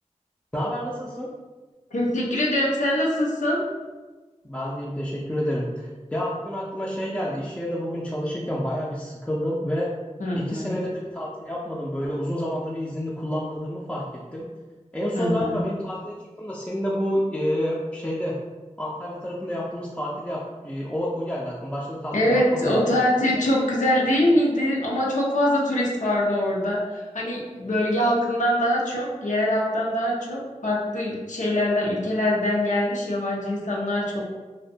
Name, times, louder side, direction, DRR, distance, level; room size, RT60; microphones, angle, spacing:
voice 1, 0.5-1.3 4.4-9.9 10.3-14.0 14.3-14.5 14.9-18.4 18.8-22.9, equal, 10° left, -6 dB, 0.3 m, -29 dB
voice 2, 1.9-3.6 10.2-10.7 15.1-15.6 22.1-34.2, left 1 dB, 85° left, -4 dB, 0.6 m, -23 dB
2.5 x 2.1 x 2.6 m, 1.3 s
wide cardioid pair, 50°, 13 cm